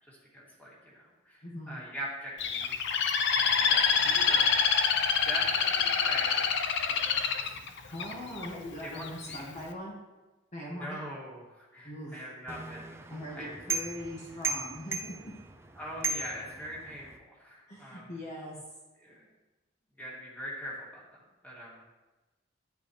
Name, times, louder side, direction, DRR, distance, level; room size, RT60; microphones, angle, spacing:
voice 1, 0.0-2.9 3.4-4.4 5.2-6.5 6.8-7.6 7.9-8.0 8.8-9.5 10.7-12.9 13.3-13.5 15.8-18.1 19.0-19.2 20.0-21.8, equal, 10° left, -6 dB, 2.6 m, -42 dB
voice 2, 1.4-1.8 7.9-10.0 10.5-11.0 11.8-12.2 13.1-15.1 17.7-18.6, left 1 dB, 35° left, -5 dB, 1.8 m, -40 dB
Bird, 2.4-8.5 9.0-9.4, left 6 dB, 60° left, 0.7 m, -26 dB
sound 1, 12.5-17.2, right 3 dB, 15° right, 0.6 m, -37 dB
10.5 x 9.8 x 3.3 m, 1.1 s
head